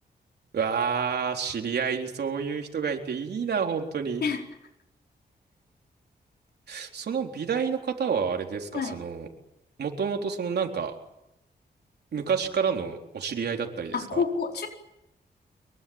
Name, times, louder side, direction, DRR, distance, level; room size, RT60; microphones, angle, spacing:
voice 1, 0.5-4.2 6.7-9.3 9.8-10.9 12.1-14.2, right 6 dB, 75° right, 3 dB, 3.9 m, -29 dB
voice 2, 13.9-14.7, left 5 dB, 75° left, 2 dB, 4.6 m, -28 dB
25.0 x 23.0 x 8.9 m, 0.87 s
wide cardioid pair, 105°, 17 cm